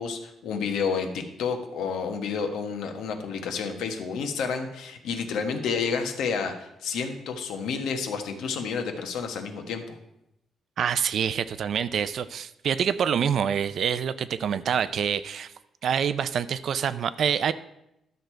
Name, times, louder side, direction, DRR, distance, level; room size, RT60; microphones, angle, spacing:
voice 1, 0.0-10.0, left 5 dB, 75° left, 6 dB, 1.2 m, -30 dB
voice 2, 10.8-15.5 15.8-17.5, right 8 dB, 50° right, 14 dB, 0.4 m, -26 dB
12.0 x 6.5 x 4.5 m, 0.84 s
cardioid pair, 160°, 0 cm